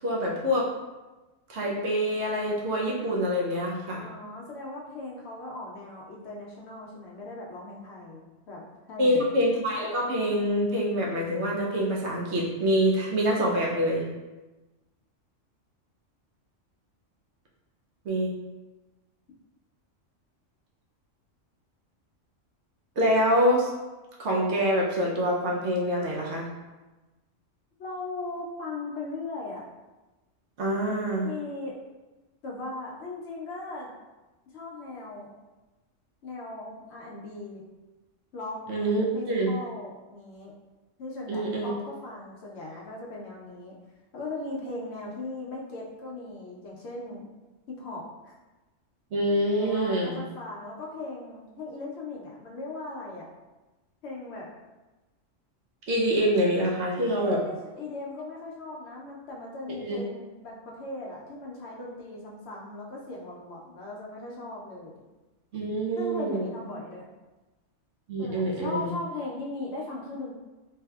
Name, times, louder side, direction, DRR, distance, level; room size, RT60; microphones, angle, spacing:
voice 1, 0.0-0.7 1.5-4.0 9.0-14.0 18.0-18.3 23.0-23.7 24.2-26.5 30.6-31.3 38.7-39.5 41.3-41.7 49.1-50.2 55.9-57.4 59.8-60.0 65.5-66.5 68.1-68.9, equal, 65° right, -3 dB, 0.8 m, -25 dB
voice 2, 4.0-8.6 8.9-9.3 27.8-29.6 31.2-31.8 32.4-33.9 34.5-35.3 36.2-37.6 38.3-38.6 39.1-40.5 41.0-43.7 44.1-47.3 47.7-48.3 49.6-53.3 54.0-54.5 57.0-64.9 66.0-67.1 68.2-70.4, left 2 dB, 65° left, -3 dB, 0.8 m, -38 dB
3.3 x 2.7 x 2.3 m, 1.1 s
omnidirectional pair, 1.3 m